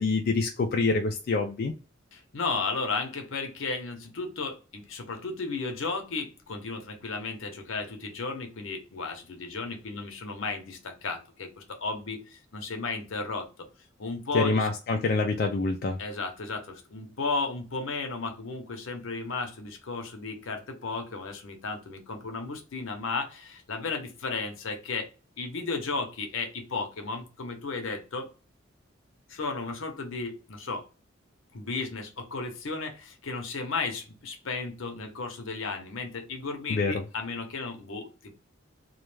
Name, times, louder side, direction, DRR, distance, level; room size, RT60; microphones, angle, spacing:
voice 1, 0.0-1.7 14.3-16.0 36.7-37.0, left 3 dB, 50° left, 0.3 m, -26 dB
voice 2, 2.1-13.7 14.0-14.7 16.0-25.1 25.4-28.3 29.3-30.8 31.5-38.3, left 4 dB, 80° left, 0.7 m, -34 dB
2.3 x 2.1 x 3.1 m
head